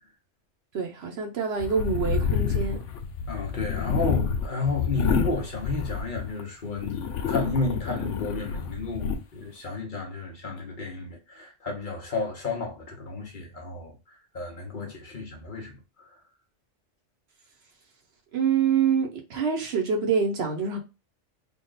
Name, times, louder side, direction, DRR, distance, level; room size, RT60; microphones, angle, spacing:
voice 1, 0.7-2.8 18.3-20.8, right 6 dB, 65° right, 1.0 m, -26 dB
sound 1, 1.6-6.4 6.8-9.2, left 6 dB, 90° left, 1.0 m, -28 dB
voice 2, 3.3-14.0 14.3-15.8, left 3 dB, 45° left, 1.0 m, -32 dB
3.7 x 2.3 x 3.9 m
omnidirectional pair, 1.2 m